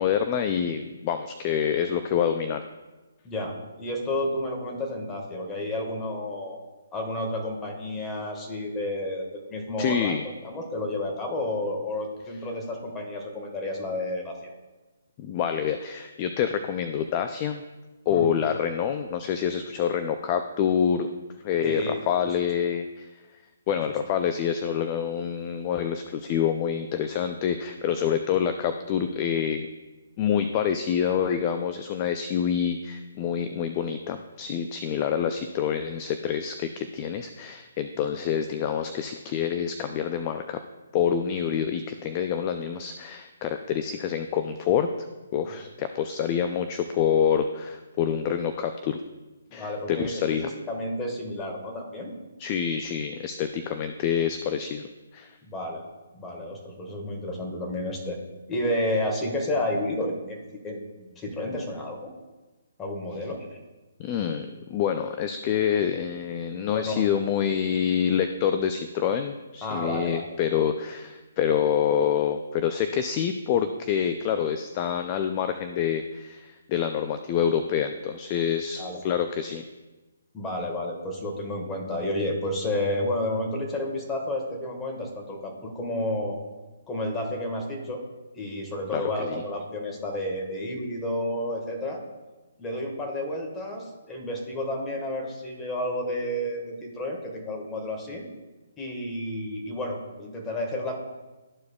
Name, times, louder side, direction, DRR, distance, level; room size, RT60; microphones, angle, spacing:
voice 1, 0.0-2.6 9.8-10.3 15.2-17.6 18.1-21.1 21.4-23.1 23.7-29.7 30.2-40.6 40.9-45.1 45.3-49.0 49.5-50.5 52.4-54.8 55.1-55.3 64.0-79.6 88.9-89.4, left 8 dB, 30° left, 9 dB, 0.4 m, -27 dB
voice 2, 3.2-6.6 6.9-10.2 10.4-14.5 18.1-18.3 21.6-22.0 45.4-45.6 49.5-50.1 50.7-52.1 55.4-55.8 56.1-58.2 58.5-62.1 62.8-63.5 66.7-67.0 69.6-70.2 78.8-79.0 80.3-86.4 86.9-88.0 88.3-92.0 92.6-98.2 98.8-101.0, left 1 dB, 15° left, 1 dB, 1.6 m, -31 dB
13.0 x 4.8 x 2.3 m, 1.2 s
figure-of-eight pair, 145°, 0 cm